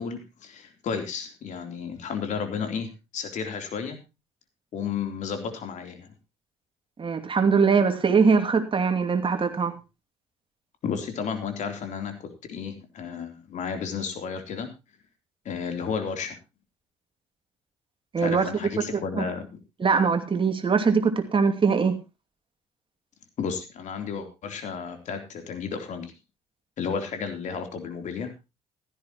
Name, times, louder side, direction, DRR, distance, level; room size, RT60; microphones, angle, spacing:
voice 1, 0.0-4.0 4.7-6.1 10.8-14.7 15.5-16.4 18.2-19.5 23.4-26.1 26.8-28.3, left 6 dB, 60° left, 6 dB, 3.5 m, -32 dB
voice 2, 7.0-9.7 18.1-18.5 18.8-18.9 19.1-19.3 19.8-22.0, right 5 dB, 40° right, 7 dB, 2.6 m, -22 dB
16.0 x 13.0 x 3.1 m, 0.27 s
hypercardioid pair, 55°, 14 cm